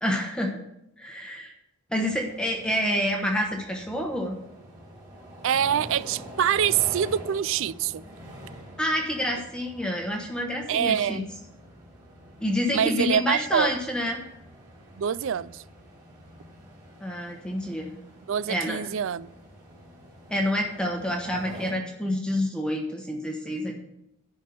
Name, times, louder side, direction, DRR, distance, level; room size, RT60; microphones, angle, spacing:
voice 1, 0.0-0.6 1.0-1.5 1.9-4.4 8.8-11.2 12.4-14.2 17.0-18.0 18.5-18.8 20.3-23.8, equal, 5° left, 1.1 m, -28 dB
sound 1, 2.0-21.7, right 1 dB, 20° right, 2.6 m, -46 dB
voice 2, 5.4-8.0 10.7-11.3 12.7-13.7 15.0-15.6 18.3-19.3, right 8 dB, 60° right, 0.4 m, -25 dB
10.5 x 5.4 x 8.0 m
head